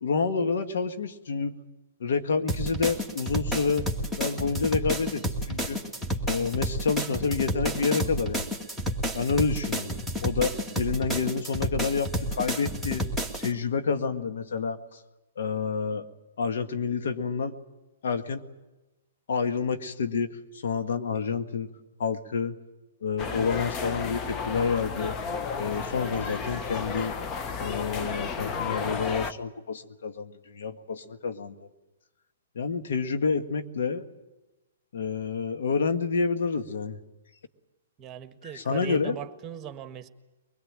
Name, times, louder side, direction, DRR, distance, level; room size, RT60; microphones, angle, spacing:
voice 1, 0.0-1.5 2.0-3.9 4.2-5.8 6.3-8.5 9.1-13.1 13.4-15.0 15.4-16.1 16.4-17.6 18.0-18.4 19.3-21.7 22.0-22.6 23.0-25.2 25.6-27.2 27.6-31.7 32.6-34.0 34.9-37.0 38.5-39.2, left 5 dB, 70° left, 7 dB, 1.7 m, -28 dB
sound 1, 2.5-13.5, equal, 5° left, 2.2 m, -30 dB
sound 2, 23.2-29.3, left 5 dB, 25° left, 1.2 m, -33 dB
voice 2, 38.0-40.1, right 9 dB, 25° right, 9 dB, 1.6 m, -39 dB
23.0 x 21.0 x 8.9 m, 1.1 s
hypercardioid pair, 125°, 0 cm